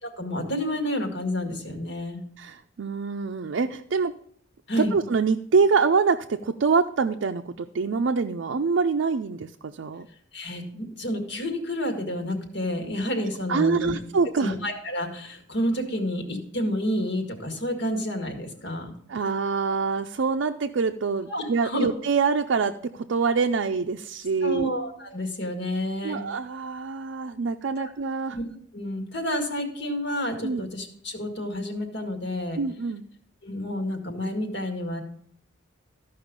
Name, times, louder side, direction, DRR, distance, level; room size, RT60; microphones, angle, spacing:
voice 1, 0.0-2.2 4.7-5.0 10.3-13.9 14.4-19.0 21.3-21.9 24.4-26.2 27.8-27.9 28.3-28.4 28.7-32.6 33.4-35.0, equal, 65° left, 4 dB, 1.9 m, -29 dB
voice 2, 2.4-4.1 4.8-10.1 13.5-14.6 19.1-24.7 26.0-28.4 30.4-30.7 32.6-33.1, right 5 dB, 70° right, 5 dB, 0.5 m, -25 dB
14.0 x 5.5 x 5.2 m, 0.65 s
head